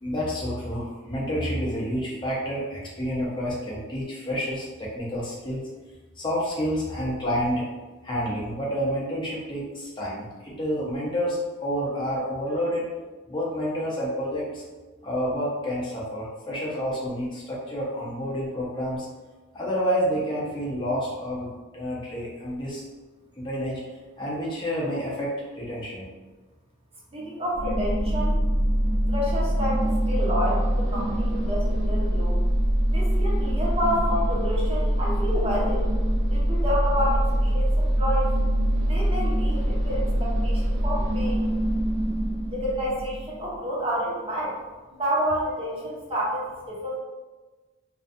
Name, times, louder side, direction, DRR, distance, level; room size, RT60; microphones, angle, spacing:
voice 1, 0.0-5.6 6.2-7.6 8.0-12.9 13.3-14.6 15.0-19.1 19.5-22.8 23.4-23.8 24.2-26.1, equal, 25° left, -5 dB, 0.5 m, -29 dB
voice 2, 27.1-28.4 29.1-32.4 32.9-35.9 36.3-38.3 38.8-41.4 42.5-44.5 44.9-47.0, equal, 30° right, -5 dB, 0.6 m, -29 dB
sound 1, 27.5-43.5, equal, 70° right, 0.7 m, -24 dB
2.5 x 2.2 x 2.4 m, 1.3 s
head